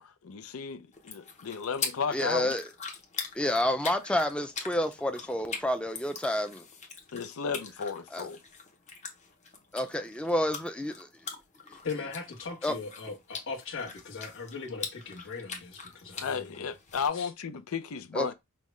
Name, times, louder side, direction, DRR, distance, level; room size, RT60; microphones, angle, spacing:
voice 1, 0.0-2.5 7.1-8.4 16.2-18.3, left 6 dB, 90° left, 0.5 m, -34 dB
sound 1, 0.9-17.1, left 5 dB, 35° left, 0.8 m, -42 dB
voice 2, 2.1-2.7 3.3-6.6 8.1-8.3 9.7-11.1 12.6-12.7 18.1-18.3, left 1 dB, 5° left, 0.5 m, -29 dB
voice 3, 11.8-16.7 17.1-17.3, left 4 dB, 60° left, 1.3 m, -39 dB
5.5 x 2.2 x 3.1 m
head